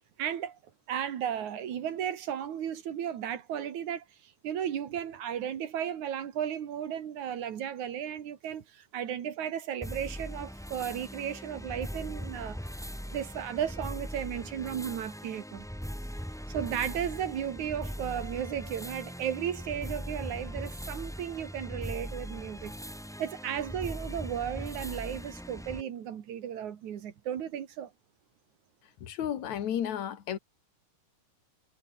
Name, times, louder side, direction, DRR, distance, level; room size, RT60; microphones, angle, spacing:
voice 1, 0.2-0.6 0.9-12.6 13.1-15.7 16.5-22.8 23.2-27.9, right 9 dB, 65° right, 3.2 m, -35 dB
sound 1, 9.8-25.8, equal, ahead, 4.4 m, -40 dB
voice 2, 29.0-30.4, left 9 dB, 60° left, 3.2 m, -33 dB
omnidirectional pair, 3.8 m